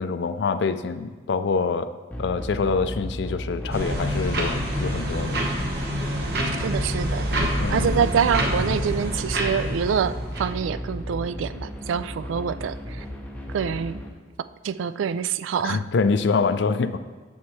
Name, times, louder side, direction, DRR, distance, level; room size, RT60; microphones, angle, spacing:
voice 1, 0.0-1.9 2.2-5.4 7.6-7.9 15.6-17.0, left 4 dB, 65° left, 12 dB, 0.4 m, -25 dB
sound 1, 2.1-14.1, equal, 10° left, 0.7 m, -33 dB
sound 2, 3.7-10.5, equal, 55° right, 1.3 m, -27 dB
voice 2, 6.6-7.4 7.7-13.0 13.5-14.0 14.6-15.8, right 7 dB, 90° right, 14 dB, 0.3 m, -26 dB
9.4 x 7.0 x 3.2 m, 1.5 s
head